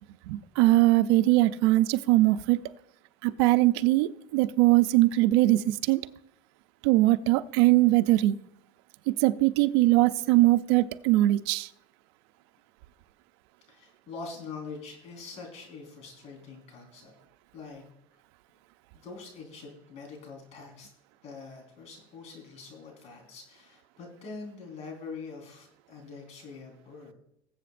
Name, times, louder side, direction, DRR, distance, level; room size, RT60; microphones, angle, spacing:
voice 1, 0.3-2.6 3.2-6.0 6.8-8.3 9.2-11.7, right 17 dB, 80° right, 11 dB, 0.5 m, -21 dB
voice 2, 13.7-17.1 17.5-17.8 18.9-20.9 21.2-27.1, left 4 dB, 55° left, 2 dB, 4.3 m, -44 dB
20.0 x 7.8 x 2.5 m, 0.77 s
supercardioid pair, 125°, 14 cm